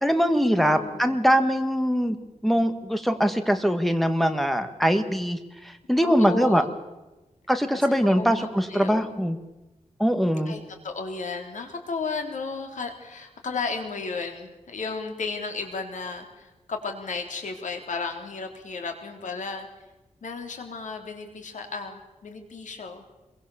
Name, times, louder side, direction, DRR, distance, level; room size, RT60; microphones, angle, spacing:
voice 1, 0.0-2.2 2.4-5.4 5.6-6.6 7.5-9.4 10.0-10.5, equal, ahead, 8 dB, 1.8 m, -22 dB
voice 2, 0.6-1.2 6.0-6.7 7.8-9.2 10.5-19.7 20.2-23.0, left 4 dB, 80° left, 4 dB, 3.6 m, -34 dB
25.5 x 23.0 x 7.1 m, 1.1 s
wide cardioid pair, 130°, 13 cm